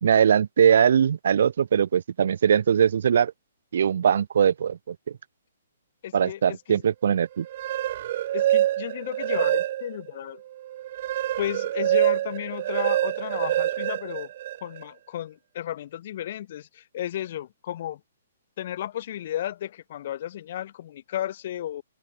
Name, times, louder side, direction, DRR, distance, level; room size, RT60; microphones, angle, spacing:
voice 1, 0.0-3.3 3.7-5.0 6.1-7.5, right 8 dB, 50° right, 2.4 m, -21 dB
voice 2, 6.0-6.8 8.3-10.4 11.4-14.3 14.6-18.0 18.6-21.8, left 12 dB, 35° left, 6.8 m, -33 dB
sound 1, 7.4-10.1 10.5-14.8, right 13 dB, 30° right, 4.0 m, -26 dB
open air
hypercardioid pair, 180°, 0 cm